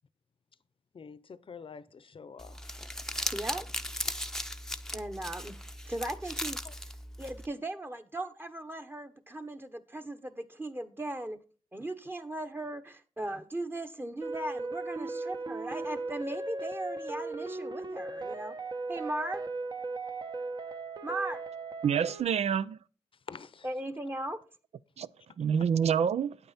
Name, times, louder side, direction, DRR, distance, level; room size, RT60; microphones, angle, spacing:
voice 1, 0.9-2.8 6.6-6.7 23.3-23.7, left 5 dB, 55° left, 0.7 m, -47 dB
Crumpling crinkling, 2.4-7.5, left 1 dB, 5° left, 0.7 m, -37 dB
voice 2, 3.3-3.7 4.9-5.6 5.9-6.6 7.2-11.4 11.7-18.6 18.9-19.4 21.0-21.4 23.6-24.4, right 1 dB, 20° right, 1.3 m, -37 dB
sound 1, 14.2-22.2, right 3 dB, 40° right, 1.2 m, -37 dB
voice 3, 21.8-22.8 25.0-25.1 25.4-26.4, right 7 dB, 80° right, 0.5 m, -27 dB
8.9 x 8.9 x 4.2 m
cardioid pair, 70°, 11 cm